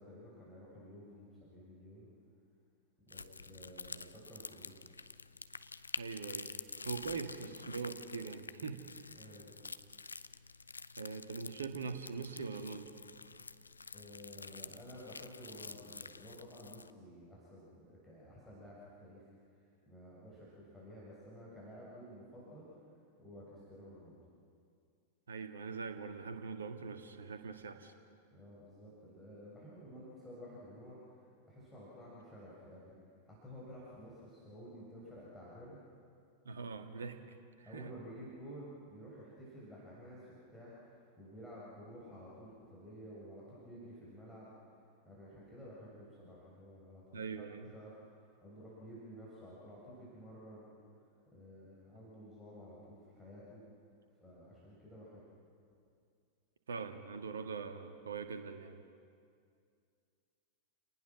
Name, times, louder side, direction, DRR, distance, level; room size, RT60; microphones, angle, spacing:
voice 1, 0.0-2.1 3.1-4.9 9.1-9.6 13.9-22.9 23.2-24.2 28.3-32.9 33.3-35.8 37.7-44.5 45.0-50.7 51.3-53.6 54.2-55.3, equal, 5° left, -8 dB, 7.3 m, -52 dB
sound 1, 3.1-16.9, left 4 dB, 80° left, 0.5 m, -48 dB
voice 2, 6.0-6.5 6.8-9.2 11.0-12.9 25.3-27.9 36.4-37.9 47.1-47.7 56.7-58.8, right 5 dB, 70° right, 7 dB, 1.7 m, -42 dB
29.5 x 19.0 x 6.3 m, 2.3 s
figure-of-eight pair, 90°, 0 cm